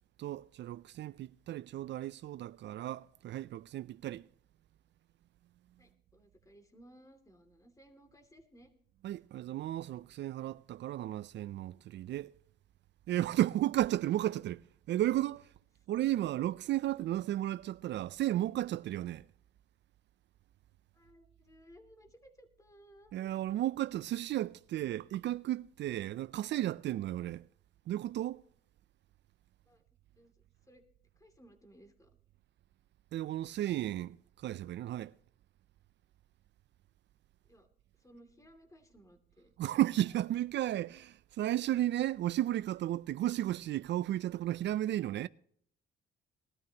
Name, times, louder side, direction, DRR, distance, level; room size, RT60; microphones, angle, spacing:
voice 1, 0.2-4.2 9.0-12.3 13.1-14.6 14.9-15.4 15.9-19.2 23.1-27.4 27.9-28.4 33.1-34.2 34.4-35.1 39.6-45.3, right 13 dB, 65° right, 0.4 m, -33 dB
voice 2, 5.8-8.7 20.9-23.1 29.7-29.8 30.2-30.3 30.7-30.8 31.2-32.1 37.4-37.7 38.0-39.5, equal, 15° left, 2.6 m, -59 dB
20.5 x 13.0 x 2.9 m
cardioid pair, 90°, 20 cm